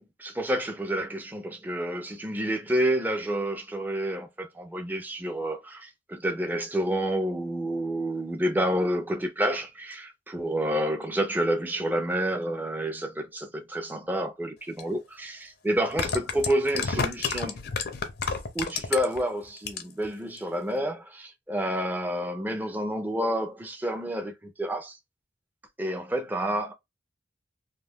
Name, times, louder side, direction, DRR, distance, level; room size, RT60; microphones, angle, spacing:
voice 1, 0.0-17.6 18.5-25.0 25.8-26.7, right 1 dB, 10° right, 0.4 m, -29 dB
sound 1, 14.8-14.9 15.8-19.2 19.6-20.1 20.4-20.5, left 5 dB, 50° left, 0.5 m, -29 dB
2.3 x 2.2 x 3.3 m
head